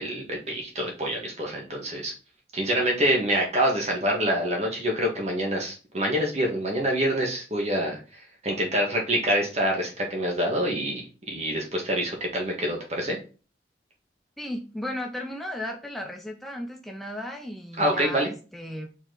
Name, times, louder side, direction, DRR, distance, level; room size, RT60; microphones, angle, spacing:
voice 1, 0.0-2.1 2.5-13.2 17.8-18.3, equal, 35° right, -1 dB, 1.6 m, -26 dB
voice 2, 14.4-18.9, left 1 dB, ahead, 1 dB, 0.6 m, -35 dB
6.0 x 4.5 x 3.9 m, 0.34 s
head